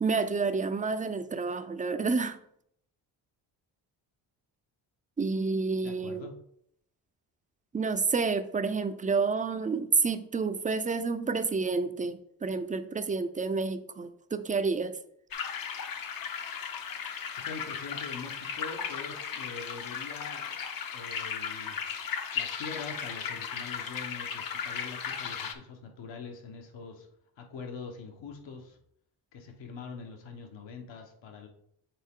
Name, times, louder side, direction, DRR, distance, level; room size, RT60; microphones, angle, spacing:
voice 1, 0.0-2.4 5.2-6.3 7.7-15.0, right 4 dB, 20° right, 10 dB, 0.4 m, -29 dB
voice 2, 5.8-6.3 17.3-20.6 20.9-21.8 22.3-27.1 27.4-28.8 29.3-31.5, left 5 dB, 75° left, 3 dB, 1.3 m, -43 dB
sound 1, 15.3-25.5, left 7 dB, 50° left, 0.8 m, -36 dB
7.4 x 4.0 x 3.7 m, 0.71 s
cardioid pair, 100°, 45 cm